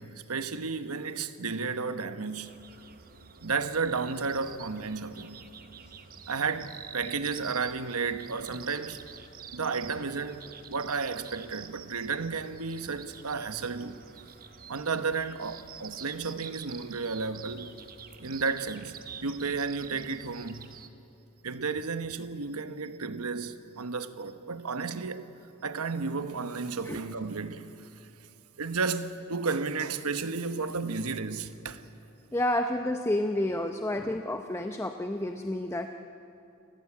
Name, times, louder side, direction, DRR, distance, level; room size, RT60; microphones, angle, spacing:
voice 1, 0.0-2.6 3.4-5.4 6.3-9.1 9.5-10.4 10.7-14.0 14.7-17.7 18.2-20.8 21.4-25.3 25.6-28.1 28.6-31.8, right 4 dB, 90° right, 1.1 m, -33 dB
sound 1, 2.4-20.9, right 7 dB, 40° right, 1.1 m, -47 dB
voice 2, 32.3-35.9, left 1 dB, 10° left, 0.7 m, -30 dB
30.0 x 15.0 x 8.5 m
head